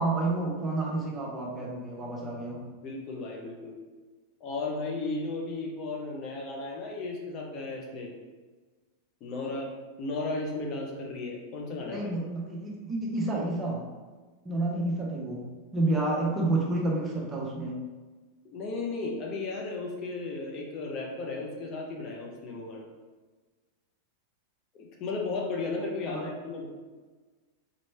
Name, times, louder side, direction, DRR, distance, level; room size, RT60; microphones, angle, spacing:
voice 1, 0.0-2.7 11.8-13.9 14.4-17.8 26.1-26.3, right 2 dB, 15° right, -2 dB, 0.8 m, -30 dB
voice 2, 2.8-3.8 4.4-8.1 9.2-9.7 10.0-12.1 18.4-22.9 24.7-26.7, left 3 dB, 35° left, -1 dB, 0.7 m, -35 dB
3.9 x 3.2 x 3.2 m, 1.3 s
figure-of-eight pair, 90°, 0 cm